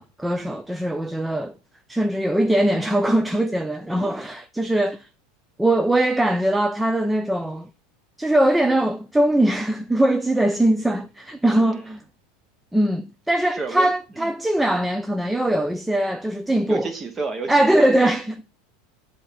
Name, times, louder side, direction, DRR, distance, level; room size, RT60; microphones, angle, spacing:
voice 1, 0.0-1.5 1.9-5.1 5.6-7.7 8.2-12.0 12.7-16.9 17.5-18.4, right 1 dB, 5° right, 0.3 m, -21 dB
voice 2, 11.5-12.0 13.5-13.9 14.2-14.3 16.7-18.1, right 4 dB, 20° right, 1.1 m, -31 dB
7.7 x 2.6 x 5.7 m
supercardioid pair, 130°, 0 cm